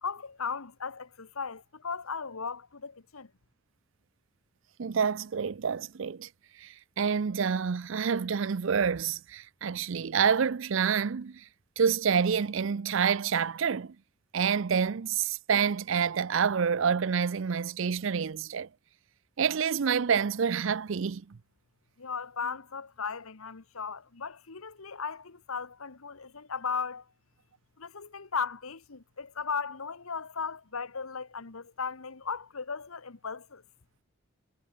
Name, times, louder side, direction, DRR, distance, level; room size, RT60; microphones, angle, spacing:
voice 1, 0.0-3.3 22.0-27.0 27.8-33.6, left 5 dB, 85° left, 1.2 m, -36 dB
voice 2, 4.8-6.3 6.6-11.4 11.8-14.0 14.3-18.7 19.4-21.2, right 6 dB, 65° right, 0.5 m, -28 dB
head